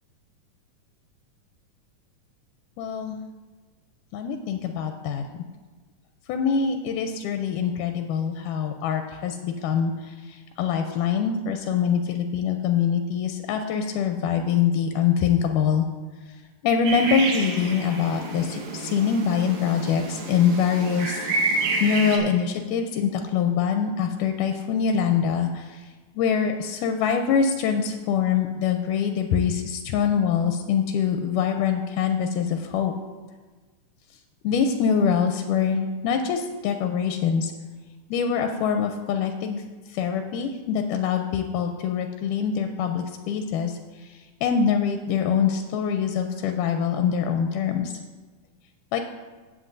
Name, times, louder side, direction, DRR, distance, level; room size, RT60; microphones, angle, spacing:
voice 1, 2.8-3.2 4.1-5.2 6.3-15.9 16.6-21.2 21.8-25.8 26.2-32.9 34.4-37.5 38.1-39.6 39.9-47.9 48.9-49.0, left 7 dB, 85° left, 5 dB, 2.1 m, -24 dB
sound 1, 16.8-22.2, right 2 dB, 65° right, 2.2 m, -29 dB
16.0 x 7.8 x 2.6 m, 1.3 s
omnidirectional pair, 3.7 m